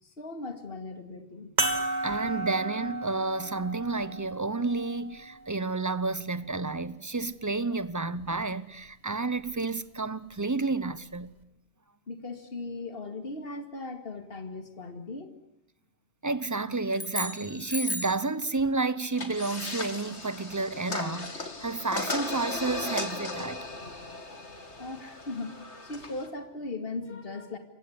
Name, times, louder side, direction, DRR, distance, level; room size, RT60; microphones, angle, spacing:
voice 1, 0.0-1.5 12.1-15.3 24.8-25.5 25.8-27.6, left 3 dB, 55° left, 2.5 m, -38 dB
sound 1, 1.6-6.4 7.2-7.3 9.4-9.5, right 2 dB, 40° right, 2.3 m, -34 dB
voice 2, 2.0-11.3 16.2-23.6, right 3 dB, 15° right, 0.9 m, -31 dB
sound 2, 16.9-18.3, left 1 dB, 10° left, 2.6 m, -35 dB
sound 3, 19.1-26.3, left 3 dB, 80° left, 3.0 m, -37 dB
28.0 x 16.0 x 9.8 m
omnidirectional pair, 1.1 m